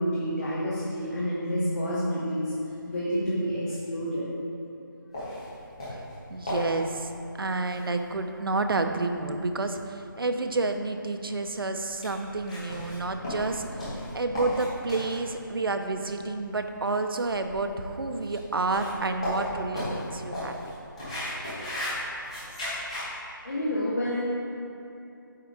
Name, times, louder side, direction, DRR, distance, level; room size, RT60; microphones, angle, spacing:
voice 1, 0.0-2.5 2.9-4.3 23.4-24.2, equal, 50° left, -8 dB, 1.3 m, -28 dB
sound 1, 5.1-23.1, left 1 dB, 15° left, 1.3 m, -37 dB
voice 2, 5.9-7.1 7.4-20.5, right 3 dB, 80° right, 6 dB, 0.6 m, -30 dB
8.3 x 3.6 x 4.7 m, 2.8 s
figure-of-eight pair, 180°, 12 cm